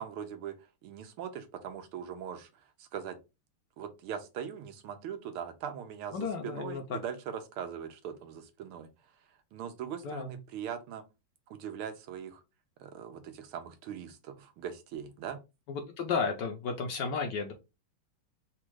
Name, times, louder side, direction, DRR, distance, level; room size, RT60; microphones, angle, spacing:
voice 1, 0.0-3.2 3.8-11.0 11.5-12.4 12.8-15.4, right 8 dB, 80° right, 7 dB, 1.6 m, -41 dB
voice 2, 6.1-7.0 10.0-10.4 15.7-17.5, left 5 dB, 65° left, 4 dB, 1.2 m, -33 dB
4.2 x 2.4 x 4.6 m, 0.26 s
omnidirectional pair, 2.4 m